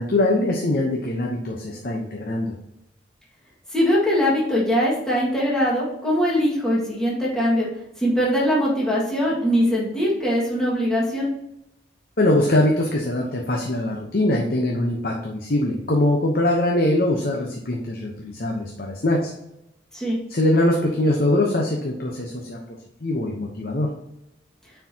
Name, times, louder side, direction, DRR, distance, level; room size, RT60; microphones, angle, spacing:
voice 1, 0.0-2.5 12.2-19.3 20.3-22.6 23.0-23.9, left 1 dB, 50° left, 0 dB, 0.9 m, -22 dB
voice 2, 3.7-7.7 8.0-11.3 19.9-20.2, equal, 5° left, -6 dB, 1.8 m, -21 dB
9.5 x 4.6 x 2.8 m, 0.85 s
head